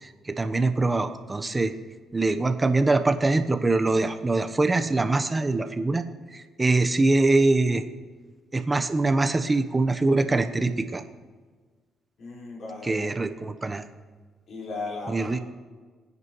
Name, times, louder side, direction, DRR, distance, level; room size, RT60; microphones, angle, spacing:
voice 1, 0.0-1.7 2.1-6.0 6.3-7.9 8.5-11.0 12.8-13.8 15.1-15.4, right 2 dB, 20° right, 8 dB, 0.9 m, -23 dB
voice 2, 12.2-13.1 14.5-15.4, left 3 dB, 60° left, -4 dB, 4.7 m, -36 dB
22.5 x 9.6 x 3.1 m, 1.4 s
cardioid pair, 90°, 0 cm